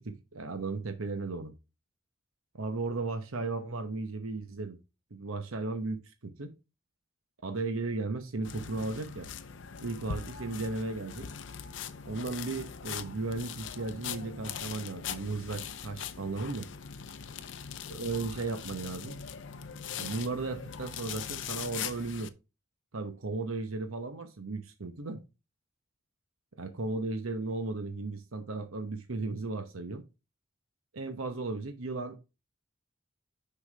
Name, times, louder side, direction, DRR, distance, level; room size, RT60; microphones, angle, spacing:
voice 1, 0.0-1.5 2.5-4.8 5.1-6.6 7.4-9.3 9.8-11.3 12.1-16.7 17.9-19.2 20.0-22.3 22.9-25.2 26.6-30.1 30.9-32.2, right 3 dB, 90° right, 0.9 m, -35 dB
sound 1, 8.4-22.3, left 7 dB, 60° left, 0.6 m, -41 dB
6.4 x 5.7 x 3.3 m
head